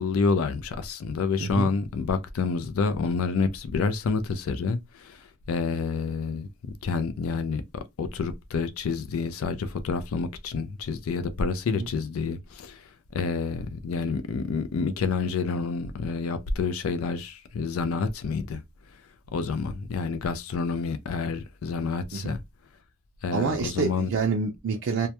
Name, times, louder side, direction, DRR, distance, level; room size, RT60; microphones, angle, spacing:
voice 1, 0.0-5.2 5.5-7.6 8.0-12.8 13.1-18.6 19.3-22.4 23.2-24.1, left 4 dB, 80° left, 0.4 m, -28 dB
voice 2, 1.4-1.7 11.7-11.9 22.1-22.4 23.3-25.1, right 5 dB, 60° right, 0.4 m, -27 dB
2.2 x 2.1 x 2.8 m
head